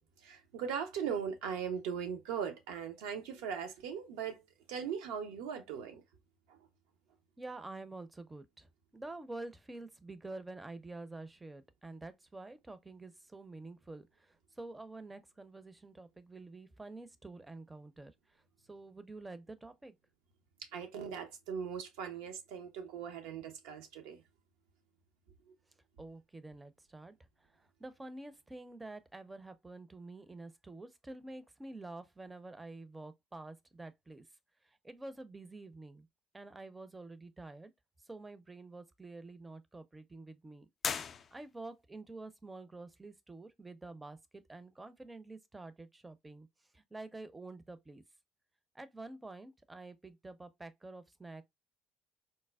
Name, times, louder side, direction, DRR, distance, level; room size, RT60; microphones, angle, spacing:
voice 1, 0.2-6.0 6.5-6.6 20.6-24.2 25.5-25.6, right 7 dB, 80° right, 0.6 m, -39 dB
voice 2, 7.4-18.1 18.7-20.0 26.0-34.2 34.6-36.1 36.3-37.7 38.0-40.7 41.3-46.5 46.7-48.0 48.7-51.4, right 2 dB, 20° right, 0.5 m, -48 dB
sound 1, 40.8-41.8, left 6 dB, 45° left, 0.3 m, -39 dB
4.1 x 2.1 x 2.2 m
hypercardioid pair, 60°, 0 cm